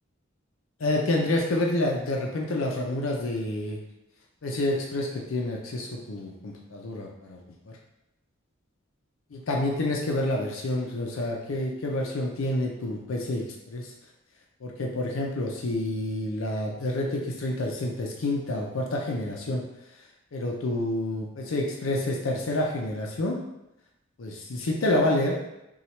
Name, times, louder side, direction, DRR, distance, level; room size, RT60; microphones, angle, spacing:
voice 1, 0.8-3.8 4.4-7.4 9.3-13.9 14.6-19.6 20.3-23.4 24.2-25.4, left 1 dB, 70° left, 0 dB, 0.6 m, -28 dB
5.7 x 2.3 x 3.1 m, 0.90 s
head